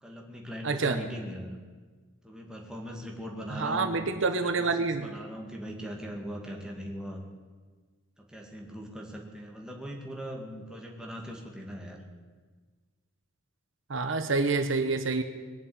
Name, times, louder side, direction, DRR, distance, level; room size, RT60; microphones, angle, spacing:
voice 1, 0.0-1.6 2.2-4.1 4.4-4.5 4.8-7.2 8.2-12.0, equal, 5° right, 0 dB, 2.2 m, -40 dB
voice 2, 0.6-1.0 3.5-5.1 13.9-15.2, right 3 dB, 65° right, 8 dB, 1.0 m, -27 dB
21.5 x 7.4 x 8.8 m, 1.4 s
head